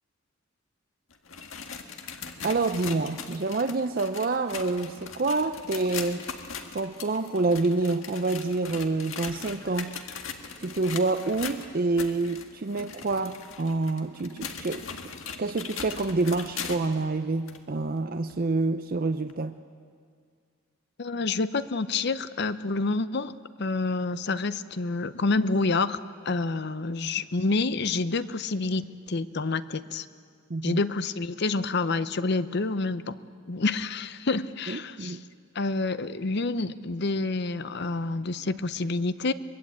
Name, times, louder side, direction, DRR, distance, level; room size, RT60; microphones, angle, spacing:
sound 1, 1.1-17.0 17.5-17.6 18.3-18.4 19.3-19.4, left 6 dB, 75° left, 1.7 m, -40 dB
voice 1, 2.4-6.3 6.7-9.9 10.6-14.9 15.4-19.5 30.5-30.8 34.7-35.2, right 3 dB, 45° right, 9 dB, 0.6 m, -27 dB
voice 2, 21.0-23.3 23.6-26.0 26.2-30.1 30.6-33.2 33.5-35.2 35.5-39.3, left 3 dB, 55° left, 13 dB, 0.7 m, -28 dB
23.0 x 21.5 x 8.6 m, 2.1 s
head